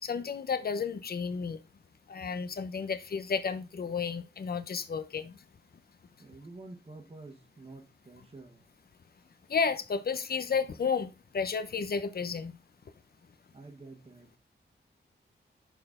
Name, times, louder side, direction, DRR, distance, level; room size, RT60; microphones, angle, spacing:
voice 1, 0.0-1.6 2.1-5.4 9.5-12.6, left 5 dB, 55° left, 0.8 m, -32 dB
voice 2, 6.2-8.6 13.5-14.4, right 2 dB, 30° right, 1.4 m, -49 dB
6.8 x 6.5 x 3.7 m
wide cardioid pair, 125°, 19 cm